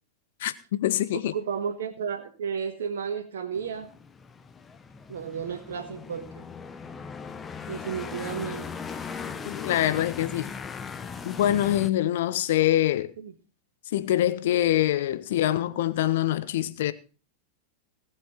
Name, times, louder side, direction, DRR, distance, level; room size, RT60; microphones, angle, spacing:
voice 1, 0.4-1.3 9.4-10.5 11.2-13.1 13.9-16.9, left 13 dB, 55° left, 1.0 m, -25 dB
voice 2, 1.3-3.9 5.1-6.4 7.7-8.7 13.2-13.3, right 7 dB, 60° right, 1.6 m, -33 dB
sound 1, 3.5-11.9, left 5 dB, 20° left, 1.0 m, -38 dB
19.0 x 7.9 x 4.3 m
figure-of-eight pair, 90°, 0 cm